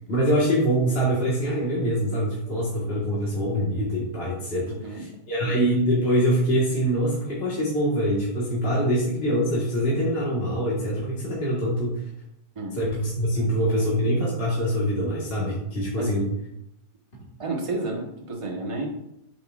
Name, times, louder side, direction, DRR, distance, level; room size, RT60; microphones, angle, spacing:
voice 1, 0.1-11.9 12.7-16.3, equal, 40° left, -7 dB, 1.7 m, -24 dB
voice 2, 4.6-5.1 5.4-5.6 12.5-12.8 13.3-13.5 16.0-16.2 17.4-18.9, right 2 dB, 25° right, 0 dB, 1.1 m, -31 dB
8.2 x 5.7 x 2.4 m, 0.79 s
omnidirectional pair, 1.6 m